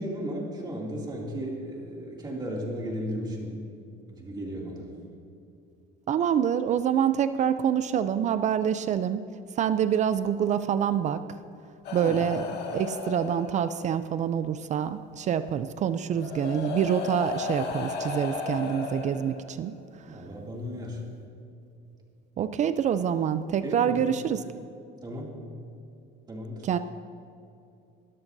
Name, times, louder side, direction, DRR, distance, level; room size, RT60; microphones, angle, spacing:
voice 1, 0.0-3.6 4.1-4.9 12.0-12.2 20.1-21.0 23.6-24.0 25.0-25.3 26.3-26.6, equal, 20° right, -2 dB, 2.5 m, -35 dB
voice 2, 6.1-9.2 9.6-11.2 11.9-19.8 22.4-24.4 26.6-26.8, right 8 dB, 35° right, 12 dB, 0.4 m, -26 dB
sound 1, 11.8-14.0 15.3-15.4 16.1-19.8 20.8-21.0, left 4 dB, 55° left, 1.9 m, -35 dB
25.0 x 13.0 x 2.7 m, 2.5 s
cardioid pair, 155°, 21 cm